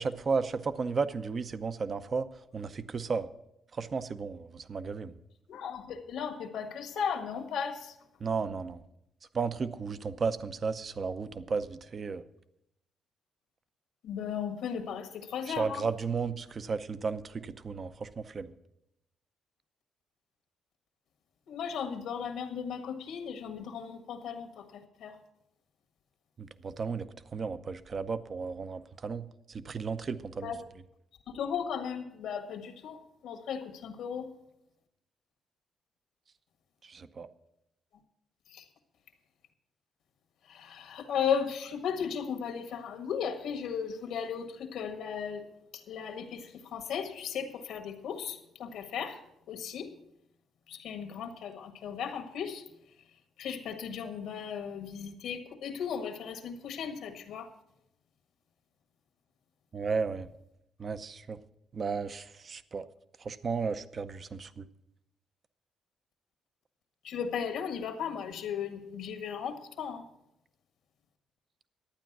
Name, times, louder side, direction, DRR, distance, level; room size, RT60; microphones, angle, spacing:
voice 1, 0.0-2.3 2.5-3.3 3.7-5.1 8.2-8.8 9.3-12.2 15.5-18.5 26.4-30.5 36.8-37.3 59.7-60.3 60.8-61.4 61.7-62.9 63.2-64.6, right 5 dB, 40° right, 13 dB, 0.6 m, -34 dB
voice 2, 5.5-8.0 14.0-15.8 21.5-25.2 30.4-30.6 31.3-34.3 38.5-38.7 40.4-45.5 45.7-49.2 49.5-49.9 50.7-52.7 53.4-57.5 67.0-70.0, left 7 dB, 80° left, 6 dB, 1.6 m, -36 dB
11.5 x 9.1 x 6.0 m, 0.82 s
cardioid pair, 90°, 0 cm